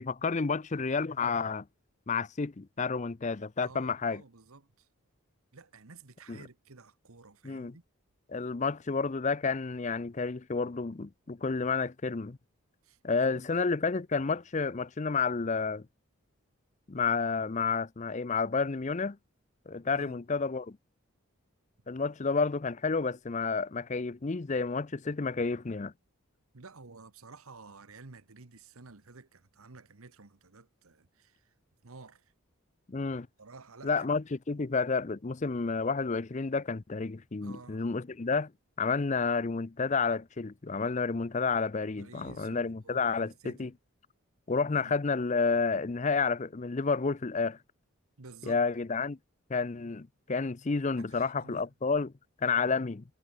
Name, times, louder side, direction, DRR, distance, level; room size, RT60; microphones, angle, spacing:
voice 1, 0.0-1.7 2.1-4.2 6.3-6.4 7.4-7.8 8.3-12.4 13.0-15.8 16.9-19.2 19.7-20.8 21.9-25.9 32.9-33.3 33.8-38.5 38.8-43.7 44.5-47.6 48.5-49.2 49.5-52.1 52.4-53.0, left 4 dB, 35° left, 0.5 m, -30 dB
voice 2, 3.6-4.9 5.5-7.8 12.8-13.4 20.0-20.2 26.5-31.4 31.8-32.2 33.4-34.1 37.4-37.8 41.7-43.7 44.7-44.9 48.2-48.6 51.0-51.6, right 3 dB, 80° right, 1.3 m, -52 dB
head